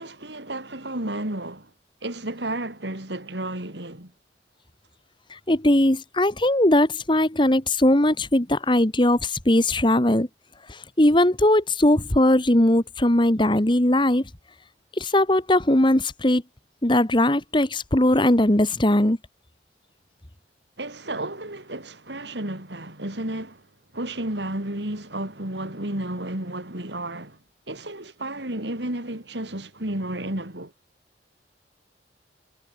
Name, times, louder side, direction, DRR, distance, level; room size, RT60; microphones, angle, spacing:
voice 1, 0.0-1.7 2.0-4.1 20.8-23.7 23.9-27.4 27.7-30.7, right 1 dB, 80° right, 4.7 m, -32 dB
voice 2, 5.3-10.3 10.7-14.2 15.0-16.4 16.8-19.2, left 1 dB, 25° left, 1.7 m, -20 dB
head